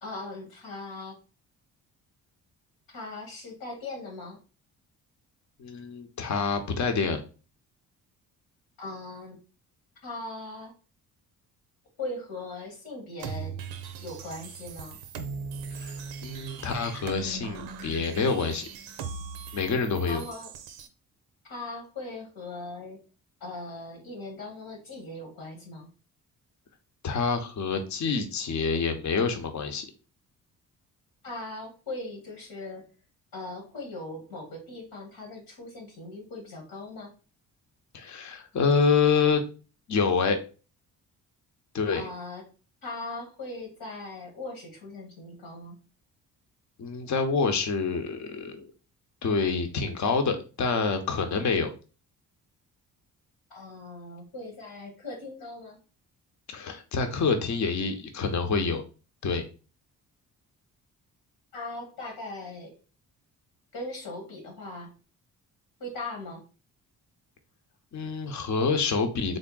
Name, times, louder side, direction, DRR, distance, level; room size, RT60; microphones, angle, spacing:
voice 1, 0.0-1.2 2.9-4.4 8.8-9.4 10.0-10.7 12.0-13.6 14.0-15.0 20.1-20.5 21.5-23.0 23.4-25.9 31.2-32.9 33.3-37.1 41.9-42.5 42.8-45.8 53.5-55.8 61.5-62.8 63.7-64.9 65.8-66.4, left 2 dB, 85° left, 0 dB, 1.3 m, -39 dB
voice 2, 5.6-7.2 15.7-16.0 16.2-18.7 19.5-20.2 27.0-29.9 37.9-39.4 39.9-40.4 41.7-42.0 46.8-48.7 49.2-51.7 56.5-58.8 59.2-59.4 67.9-69.4, left 5 dB, 50° left, 6 dB, 0.8 m, -27 dB
sound 1, 13.2-20.9, right 5 dB, 80° right, 0.6 m, -39 dB
3.6 x 2.0 x 3.8 m, 0.35 s
supercardioid pair, 55°, 37 cm